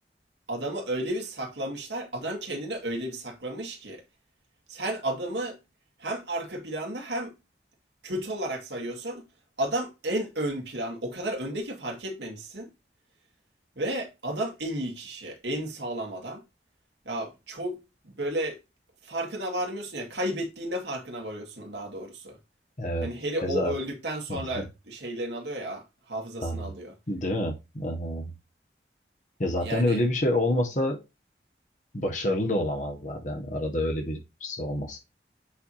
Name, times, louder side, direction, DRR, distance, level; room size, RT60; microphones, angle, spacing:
voice 1, 0.5-4.0 4.7-5.6 6.0-7.4 8.0-9.2 9.6-12.7 13.8-16.4 17.1-18.6 19.0-22.4 23.0-27.0 29.6-30.0, right 1 dB, 80° right, 2.0 m, -33 dB
voice 2, 22.8-23.1 23.4-23.7 24.3-24.6 26.4-26.7 27.1-28.3 29.4-31.0 31.9-35.0, left 1 dB, 45° left, 1.5 m, -28 dB
8.0 x 4.7 x 2.7 m
head